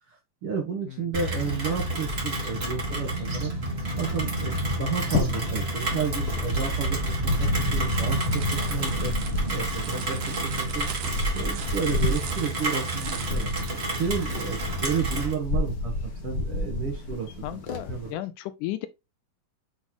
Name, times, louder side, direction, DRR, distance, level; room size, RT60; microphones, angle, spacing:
voice 1, 0.4-3.5 3.9-4.5 4.8-9.1 9.5-10.9 11.3-13.5 14.0-17.6 17.9-18.2, right 6 dB, 55° right, 1.7 m, -32 dB
Rain, 1.1-15.3, right 1 dB, 30° right, 1.3 m, -29 dB
sound 1, 4.0-18.1, left 2 dB, 65° left, 0.9 m, -32 dB
sound 2, 7.8-14.5, right 10 dB, 85° right, 2.6 m, -41 dB
voice 2, 17.4-18.9, left 14 dB, 80° left, 2.0 m, -34 dB
7.9 x 4.1 x 2.9 m
omnidirectional pair, 3.8 m